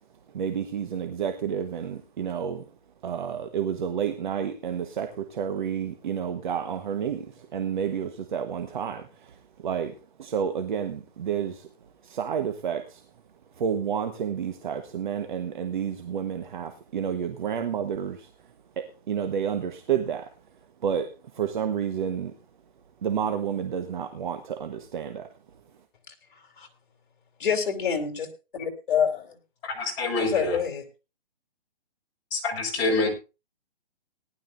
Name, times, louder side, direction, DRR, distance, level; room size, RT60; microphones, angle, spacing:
voice 1, 0.3-2.7 3.0-11.7 12.0-13.0 13.6-18.3 18.8-20.3 20.8-22.3 23.0-25.3, right 8 dB, 55° right, 7 dB, 1.3 m, -30 dB
voice 2, 27.4-28.3 28.5-29.3 30.2-30.8, left 7 dB, 55° left, 4 dB, 3.4 m, -27 dB
voice 3, 29.6-30.6 32.3-33.1, left 3 dB, 30° left, -1 dB, 4.6 m, -26 dB
18.5 x 11.5 x 2.6 m, 0.29 s
hypercardioid pair, 160°, 30 cm